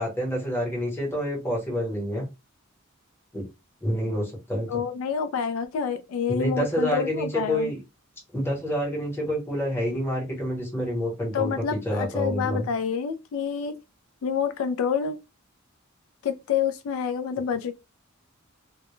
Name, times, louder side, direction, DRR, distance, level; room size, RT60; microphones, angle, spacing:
voice 1, 0.0-2.3 3.3-3.5 3.8-4.8 6.3-7.8 8.3-12.7, equal, 10° left, 0.9 m, -28 dB
voice 2, 4.7-7.7 11.3-13.7 14.2-15.2 16.2-17.7, left 6 dB, 75° left, 0.3 m, -28 dB
2.1 x 2.0 x 2.9 m
head